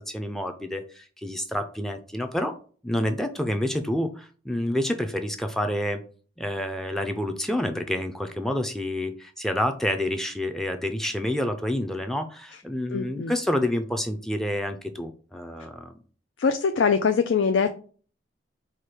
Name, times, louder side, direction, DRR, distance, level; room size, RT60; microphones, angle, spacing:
voice 1, 0.0-2.5 2.8-6.0 6.4-15.9, left 1 dB, ahead, 7 dB, 0.4 m, -28 dB
voice 2, 12.9-13.3 16.4-17.9, left 5 dB, 90° left, 7 dB, 0.4 m, -23 dB
4.9 x 2.2 x 4.3 m, 0.40 s
head